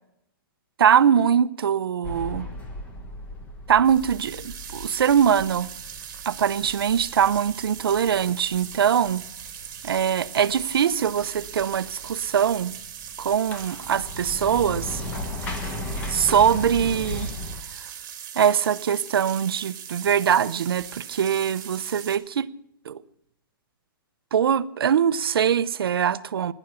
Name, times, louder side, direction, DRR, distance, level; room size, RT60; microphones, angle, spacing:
voice 1, 0.8-2.5 3.7-5.7 6.3-9.2 9.8-12.7 13.2-15.0 16.1-17.3 18.3-22.5 22.8-23.0 24.3-26.5, right 8 dB, 85° right, 0.7 m, -22 dB
sound 1, 2.0-17.6, left 1 dB, 15° left, 1.2 m, -37 dB
sound 2, 3.8-22.1, right 9 dB, 55° right, 2.7 m, -40 dB
16.5 x 11.0 x 6.8 m
hypercardioid pair, 170°, 12 cm